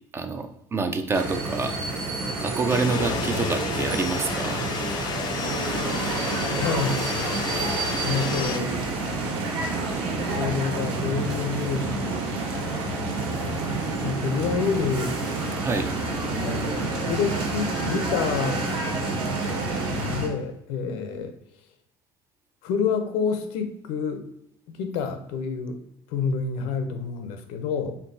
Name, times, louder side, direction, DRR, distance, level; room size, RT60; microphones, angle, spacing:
voice 1, 0.1-1.7 2.4-4.6 15.6-15.9, right 4 dB, 25° right, 7 dB, 0.4 m, -27 dB
sound 1, 1.1-20.3, right 2 dB, 55° right, 1.4 m, -30 dB
sound 2, 2.7-8.6, left 7 dB, 45° left, 0.5 m, -32 dB
sound 3, 5.4-20.2, right 4 dB, 75° right, 0.9 m, -34 dB
voice 2, 6.6-7.0 8.0-8.8 10.4-13.2 14.0-15.5 16.4-18.7 20.1-21.3 22.6-24.3 24.7-25.8 26.1-28.0, left 5 dB, 80° left, 7 dB, 0.7 m, -28 dB
4.4 x 3.5 x 2.6 m, 0.77 s
cardioid pair, 135°, 10 cm